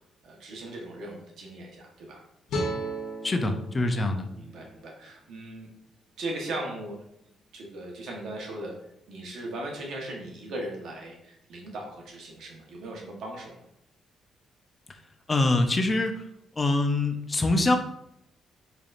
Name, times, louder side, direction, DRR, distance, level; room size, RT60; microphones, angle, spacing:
voice 1, 0.2-2.2 3.7-3.9 4.4-5.7 6.2-7.0 7.5-8.7 9.1-13.6, right 1 dB, 70° right, -1 dB, 1.1 m, -38 dB
sound 1, 2.5-5.7, right 1 dB, 70° left, 1.0 m, -36 dB
voice 2, 3.2-4.3 15.3-16.2 16.6-17.8, left 2 dB, 25° left, 5 dB, 0.5 m, -24 dB
3.9 x 3.3 x 2.5 m, 0.78 s
cardioid pair, 90°, 0 cm